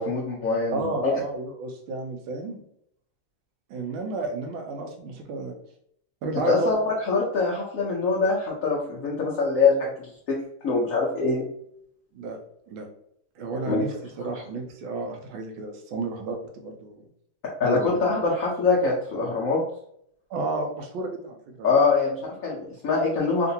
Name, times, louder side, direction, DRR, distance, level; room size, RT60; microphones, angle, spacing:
voice 1, 0.0-1.1 6.5-10.4 10.6-11.4 13.6-13.8 17.6-19.6 21.6-23.5, left 4 dB, 65° left, -4 dB, 0.8 m, -24 dB
voice 2, 0.7-2.6 3.7-5.5 6.2-6.8 12.1-12.4 12.7-12.9 13.4-17.1 17.6-18.0 20.3-21.7, right 3 dB, 90° right, 3 dB, 1.4 m, -32 dB
3.6 x 2.5 x 2.7 m, 0.70 s
omnidirectional pair, 2.2 m